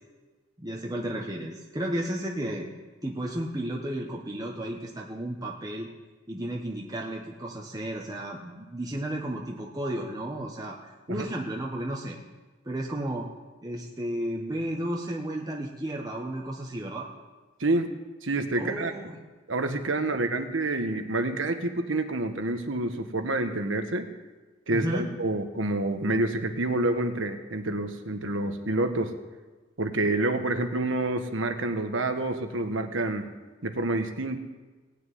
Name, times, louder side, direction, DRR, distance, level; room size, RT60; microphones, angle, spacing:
voice 1, 0.6-2.7 3.0-5.9 6.3-12.2 12.6-13.3 13.6-17.1 18.6-19.2 20.3-20.4 24.7-25.1, right 1 dB, 20° right, -1 dB, 1.3 m, -33 dB
voice 2, 18.2-18.9 19.5-24.1 24.7-29.1 29.8-33.3 33.6-34.4, right 2 dB, 70° right, 7 dB, 1.4 m, -28 dB
18.0 x 6.8 x 9.3 m, 1.3 s
head